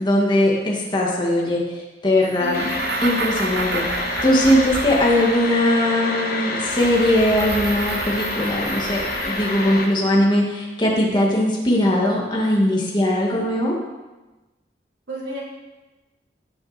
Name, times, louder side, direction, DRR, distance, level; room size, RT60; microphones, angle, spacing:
voice 1, 0.0-2.7 3.0-13.7, left 1 dB, 25° left, -3 dB, 2.1 m, -20 dB
sound 1, 2.3-5.6 6.7-9.8, right 4 dB, 60° right, 0.9 m, -31 dB
voice 2, 2.4-2.9 15.1-15.4, equal, 90° right, -5 dB, 3.9 m, -31 dB
sound 2, 2.5-9.8, left 2 dB, 55° left, 1.4 m, -28 dB
17.5 x 6.4 x 4.4 m, 1.1 s
head